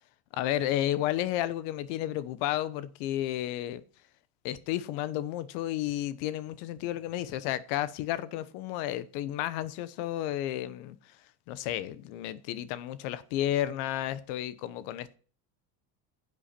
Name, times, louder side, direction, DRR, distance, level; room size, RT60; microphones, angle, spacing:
voice 1, 0.3-3.8 4.4-11.2 11.5-15.2, left 13 dB, 75° left, 1.0 m, -32 dB
10.0 x 8.2 x 4.4 m
supercardioid pair, 105°, 43 cm